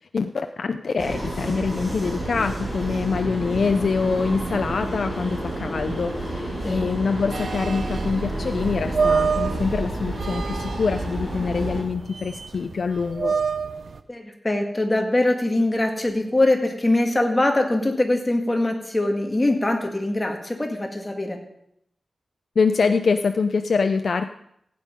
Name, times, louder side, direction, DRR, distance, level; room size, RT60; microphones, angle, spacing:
voice 1, 0.1-13.3 22.6-24.3, left 5 dB, 65° left, 7 dB, 0.5 m, -25 dB
sound 1, 1.0-11.8, right 1 dB, 20° right, 5.8 m, -30 dB
sound 2, 7.3-14.0, right 5 dB, 70° right, 0.7 m, -28 dB
voice 2, 14.1-21.4, left 1 dB, 20° left, 3 dB, 1.8 m, -22 dB
15.5 x 9.3 x 5.2 m, 0.76 s
wide cardioid pair, 125°, 0 cm